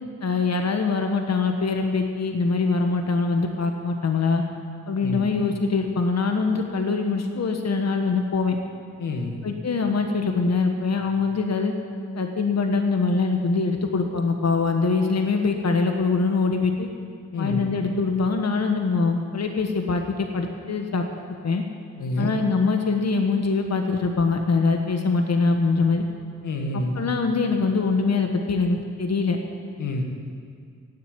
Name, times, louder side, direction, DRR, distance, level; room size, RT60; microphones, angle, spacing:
voice 1, 0.2-4.4 4.9-8.6 9.4-11.7 12.2-16.9 17.4-21.0 21.4-21.6 22.2-26.0 26.7-29.4, left 4 dB, 55° left, 4 dB, 1.4 m, -23 dB
voice 2, 9.0-9.4 17.3-17.6 22.0-22.3 26.4-27.0 29.8-30.0, left 2 dB, 85° left, 3 dB, 1.7 m, -27 dB
16.0 x 7.9 x 9.1 m, 2.2 s
cardioid pair, 50°, 31 cm